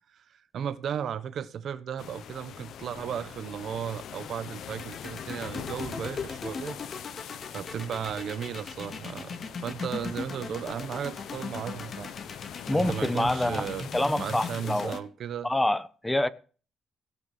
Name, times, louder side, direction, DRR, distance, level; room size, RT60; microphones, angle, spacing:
voice 1, 0.1-6.8 7.5-12.1 12.7-13.9 14.1-15.5, right 8 dB, 65° right, 1.2 m, -35 dB
sound 1, 2.0-15.0, left 9 dB, 70° left, 1.0 m, -43 dB
sound 2, 4.7-15.0, left 4 dB, 40° left, 2.7 m, -38 dB
voice 2, 12.7-13.7 13.9-15.0 15.4-16.3, left 1 dB, 10° left, 1.0 m, -26 dB
17.0 x 6.2 x 7.9 m
cardioid pair, 90°, 0 cm